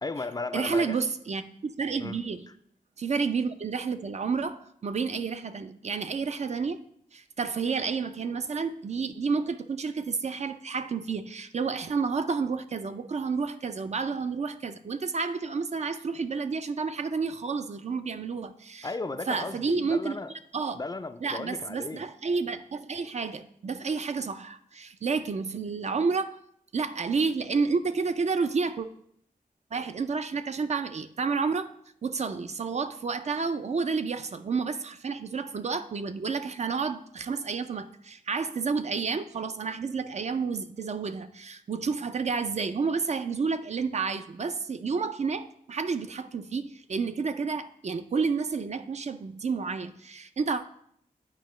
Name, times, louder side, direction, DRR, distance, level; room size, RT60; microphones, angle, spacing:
voice 1, 0.0-1.0 2.0-2.2 18.8-20.3 20.7-22.0, left 3 dB, 25° left, 0.3 m, -35 dB
voice 2, 0.5-2.5 3.0-6.8 7.1-18.9 19.3-20.2 20.5-20.8 21.2-26.4 26.7-28.9 29.7-31.7 32.0-50.6, right 5 dB, 50° right, 0.4 m, -30 dB
9.1 x 4.8 x 3.1 m
wide cardioid pair, 90°, 15 cm